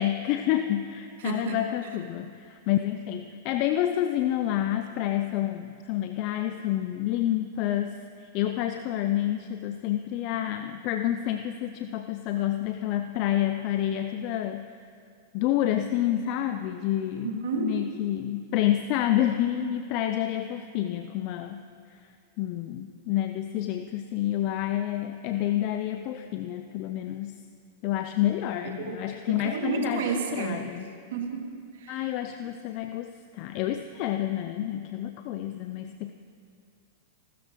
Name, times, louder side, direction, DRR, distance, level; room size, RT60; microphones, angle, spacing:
voice 1, 0.0-14.7 15.3-21.6 21.9-22.0 22.4-27.4 27.8-30.9 31.9-36.1, left 12 dB, 50° left, 7 dB, 0.6 m, -29 dB
voice 2, 1.2-1.6 17.2-17.7 28.8-29.0 29.3-30.6 31.1-31.4 31.8-32.1, right 6 dB, 75° right, 1 dB, 2.4 m, -31 dB
29.5 x 13.0 x 3.1 m, 2.4 s
hypercardioid pair, 110°, 0 cm